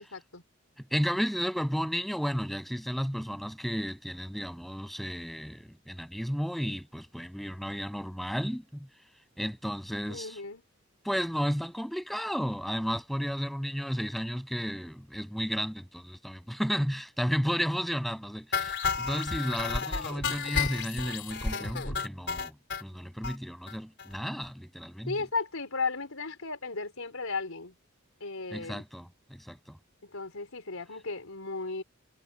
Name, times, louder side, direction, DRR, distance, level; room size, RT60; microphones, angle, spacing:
voice 1, 0.1-0.4 10.1-10.6 25.1-27.7 28.2-28.8 30.1-31.8, left 4 dB, 75° left, 4.8 m, -35 dB
voice 2, 0.9-8.9 9.4-10.4 11.0-22.5 22.8-25.2 28.5-29.8, equal, ahead, 8.0 m, -33 dB
sound 1, 18.5-22.8 23.2-23.4 23.7-23.8 24.0-24.1 24.4-24.5, left 5 dB, 55° left, 4.0 m, -32 dB
head